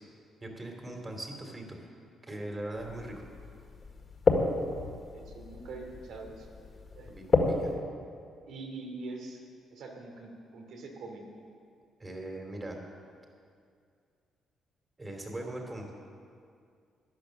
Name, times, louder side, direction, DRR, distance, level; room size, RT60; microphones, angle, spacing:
voice 1, 0.4-1.8 2.2-3.2 7.1-7.7 12.0-12.8 15.0-15.9, right 1 dB, 25° right, 2 dB, 2.7 m, -40 dB
sound 1, 2.8-7.8, left 3 dB, 40° left, 1.9 m, -31 dB
voice 2, 5.1-6.5 6.9-7.1 8.5-9.4 9.7-11.3, right 3 dB, 75° right, 2 dB, 2.5 m, -43 dB
14.0 x 10.5 x 6.5 m, 2.3 s
cardioid pair, 90°, 0 cm